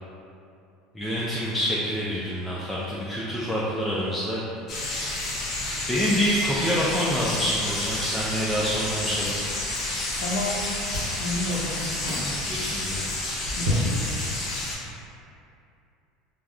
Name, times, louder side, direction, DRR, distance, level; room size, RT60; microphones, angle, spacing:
voice 1, 0.9-4.4 5.9-9.3 11.5-11.6 12.1-13.0, equal, 10° left, -8 dB, 0.4 m, -27 dB
sound 1, 4.7-14.8, left 2 dB, 50° left, 0.8 m, -30 dB
sound 2, 7.6-14.3, equal, 20° right, 1.1 m, -39 dB
Chewing mastication, 9.2-10.2 10.4-11.3 11.8-12.2 12.8-14.2, left 1 dB, 80° right, 0.8 m, -32 dB
voice 2, 10.2-10.6 11.2-12.4 13.6-14.1, left 2 dB, 75° left, -1 dB, 0.4 m, -31 dB
3.4 x 2.0 x 2.3 m, 2.5 s
hypercardioid pair, 90°, 0 cm